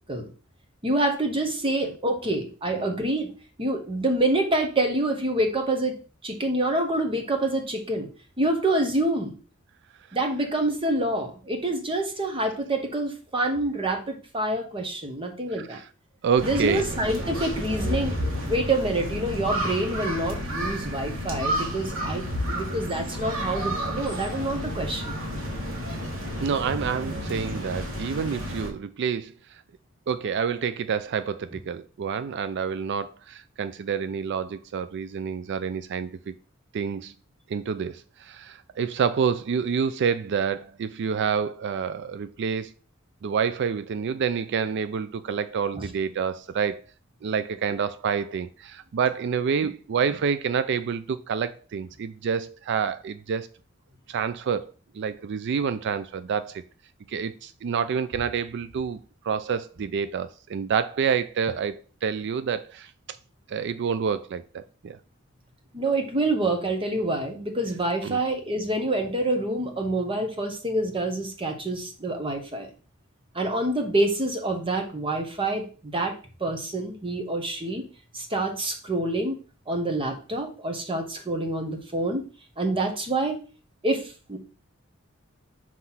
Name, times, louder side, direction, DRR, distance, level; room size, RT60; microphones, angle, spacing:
voice 1, 0.8-3.3 3.6-8.1 8.4-9.4 10.1-15.8 16.4-25.2 45.7-45.8 65.7-72.7 73.3-76.1 76.4-77.8 78.1-79.4 79.7-82.2 82.6-83.4 83.8-84.4, right 1 dB, 25° right, 1.0 m, -27 dB
voice 2, 16.2-16.9 26.4-29.6 30.1-36.3 36.7-37.1 37.5-42.7 43.2-46.8 47.2-53.5 54.1-56.6 57.1-59.0 59.2-62.9 63.5-65.0 68.0-68.2, right 6 dB, 55° right, 0.4 m, -28 dB
sound 1, 16.4-28.7, equal, 75° right, 1.7 m, -31 dB
5.8 x 3.1 x 5.7 m
head